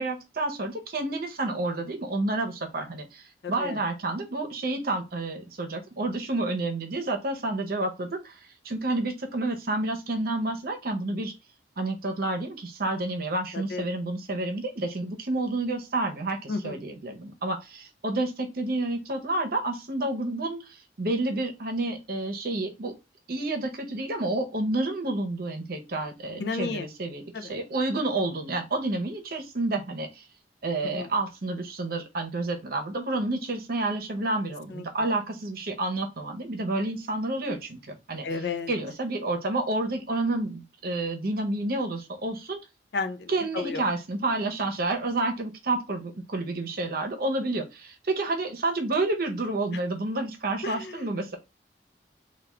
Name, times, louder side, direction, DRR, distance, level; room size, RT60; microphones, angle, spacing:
voice 1, 0.0-3.2 3.5-11.3 11.8-22.9 23.3-30.2 30.6-38.3 38.7-42.6 43.3-51.4, right 2 dB, 55° right, 0.8 m, -29 dB
voice 2, 3.4-3.8 13.5-13.9 16.5-16.8 26.4-26.9 27.3-27.5 30.8-31.1 34.7-34.8 38.2-38.7 42.9-43.8 50.6-51.0, left 4 dB, 65° left, 0.4 m, -32 dB
3.5 x 2.3 x 3.2 m
head